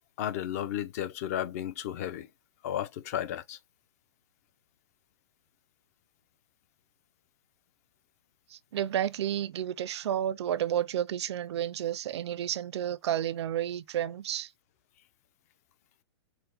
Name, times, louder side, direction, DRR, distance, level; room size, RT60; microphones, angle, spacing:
voice 1, 0.0-2.3 2.6-3.6, left 11 dB, 35° left, 0.4 m, -33 dB
voice 2, 8.5-14.5, right 10 dB, 75° right, 0.4 m, -31 dB
4.4 x 2.1 x 3.3 m
hypercardioid pair, 170°, 14 cm